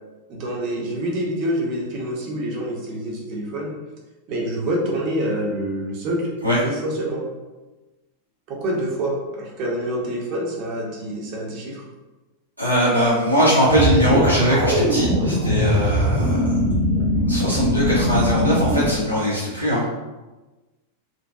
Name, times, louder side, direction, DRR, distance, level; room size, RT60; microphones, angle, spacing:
voice 1, 0.3-3.8 4.3-6.4 6.6-7.3 8.5-11.8, right 1 dB, 40° right, -1 dB, 0.6 m, -26 dB
voice 2, 12.6-16.5 17.3-19.9, equal, 90° right, -8 dB, 0.5 m, -20 dB
sound 1, 13.7-18.9, equal, 70° right, 0.9 m, -20 dB
2.5 x 2.2 x 2.3 m, 1.2 s
figure-of-eight pair, 90°, 0 cm